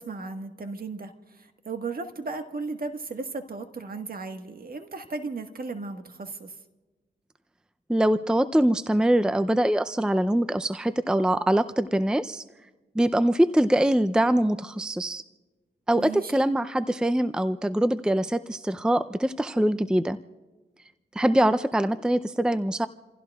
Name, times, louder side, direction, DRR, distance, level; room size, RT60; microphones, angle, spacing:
voice 1, 0.0-6.5 16.0-16.3, right 3 dB, 50° right, 6 dB, 1.5 m, -35 dB
voice 2, 7.9-12.4 13.0-15.2 15.9-20.2 21.2-22.9, right 1 dB, 5° right, 11 dB, 0.5 m, -23 dB
29.0 x 16.0 x 2.4 m, 1.2 s
cardioid pair, 60°, 19 cm